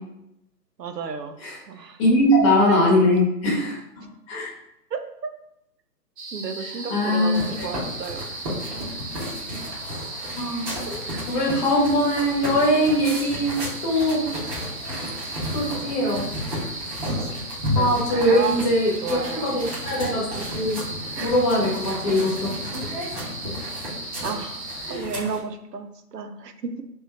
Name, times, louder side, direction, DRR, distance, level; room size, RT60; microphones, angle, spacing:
voice 1, 0.8-1.4 1.7-2.0 2.5-3.1 4.9-5.0 6.3-8.3 17.7-18.6 19.0-19.6 21.2-21.3 22.8-22.9 24.2-24.6 24.9-26.8, right 6 dB, 75° right, 7 dB, 0.7 m, -32 dB
voice 2, 2.0-4.5 6.9-7.6 9.8-9.9 10.3-10.7 11.3-14.3 15.5-16.3 17.7-20.8 21.2-22.5 24.8-25.1, left 1 dB, 20° left, -4 dB, 1.0 m, -22 dB
sound 1, 6.2-25.0, right 2 dB, 40° right, 0.9 m, -36 dB
sound 2, 7.3-25.4, equal, 20° right, 1.1 m, -33 dB
3.4 x 2.9 x 4.4 m, 0.81 s
figure-of-eight pair, 135°, 49 cm